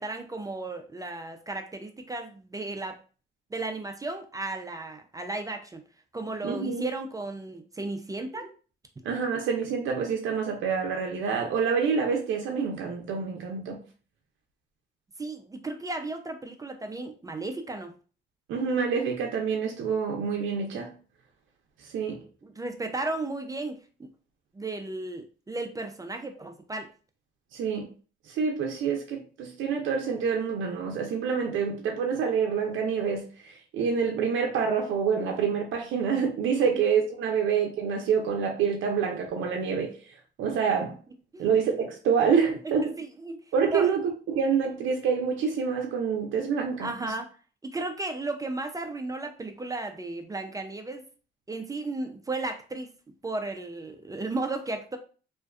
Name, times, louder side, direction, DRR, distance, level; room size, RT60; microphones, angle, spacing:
voice 1, 0.0-3.0 3.5-5.8 6.1-8.5 15.2-17.9 22.4-24.1 24.5-26.9 41.3-41.5 42.8-43.4 43.7-43.9 46.8-47.3 47.6-51.0 51.5-52.9 53.2-55.0, right 2 dB, 20° right, 0.3 m, -34 dB
voice 2, 6.4-6.9 9.0-13.8 18.5-20.9 21.9-22.2 27.5-27.9 28.3-40.0 40.4-41.0 41.4-42.9 43.5-46.9, right 6 dB, 75° right, 0.5 m, -27 dB
2.5 x 2.2 x 2.3 m
cardioid pair, 90°, 20 cm